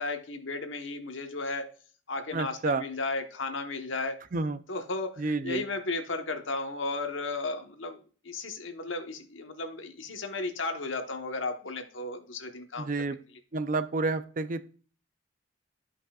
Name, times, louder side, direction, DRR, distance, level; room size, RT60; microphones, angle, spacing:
voice 1, 0.0-1.7 2.1-4.2 4.7-13.2, left 3 dB, 75° left, 5 dB, 1.1 m, -34 dB
voice 2, 2.3-2.8 4.3-4.6 5.2-5.6 12.8-13.2 13.5-14.6, right 3 dB, 45° right, 11 dB, 0.5 m, -30 dB
12.5 x 5.4 x 2.4 m, 0.40 s
head